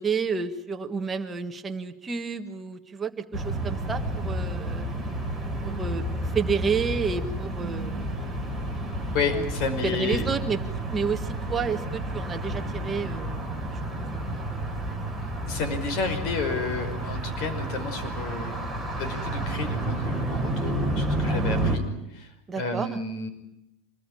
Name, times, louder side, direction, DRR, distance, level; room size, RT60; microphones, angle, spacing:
voice 1, 0.0-4.9 5.6-6.0 6.3-8.2 9.3-9.4 9.8-10.6 10.9-14.6 14.9-15.1 22.5-23.0, right 5 dB, 15° right, 6 dB, 1.5 m, -30 dB
sound 1, 3.3-21.8, right 1 dB, 10° left, 4.0 m, -30 dB
voice 2, 9.1-10.3 15.5-18.6 18.9-21.8 22.1-23.3, left 4 dB, 40° left, 9 dB, 5.3 m, -31 dB
26.5 x 20.0 x 9.9 m, 0.83 s
supercardioid pair, 180°, 0 cm